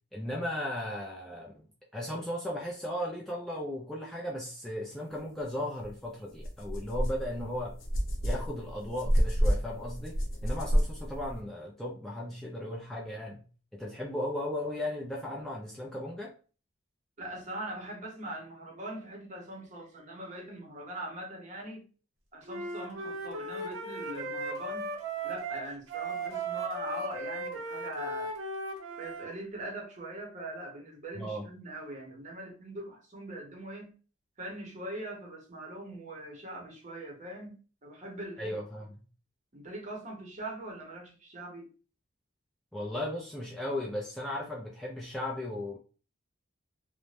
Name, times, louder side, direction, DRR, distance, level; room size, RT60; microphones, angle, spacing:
voice 1, 0.1-1.7 1.9-7.7 8.2-10.2 10.4-13.4 13.7-16.3 31.2-31.5 38.4-38.9 42.7-45.8, left 1 dB, ahead, 0.4 m, -36 dB
sound 1, 5.8-5.9 6.4-11.4, equal, 90° left, 0.7 m, -30 dB
voice 2, 17.2-21.9 22.3-24.9 25.2-28.3 29.0-33.9 34.4-38.5 39.5-41.7, right 1 dB, 40° right, 0.7 m, -41 dB
Wind instrument woodwind instrument, 22.5-29.3, right 2 dB, 90° right, 0.7 m, -37 dB
2.6 x 2.1 x 3.1 m
head